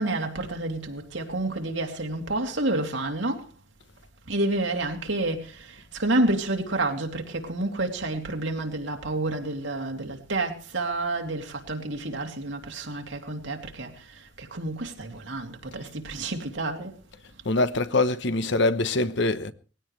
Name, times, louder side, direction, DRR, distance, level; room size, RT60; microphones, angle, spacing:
voice 1, 0.0-3.5 4.3-16.9, right 2 dB, 75° right, 2.7 m, -29 dB
voice 2, 17.4-19.5, left 2 dB, 65° left, 1.1 m, -24 dB
20.0 x 16.5 x 3.2 m
head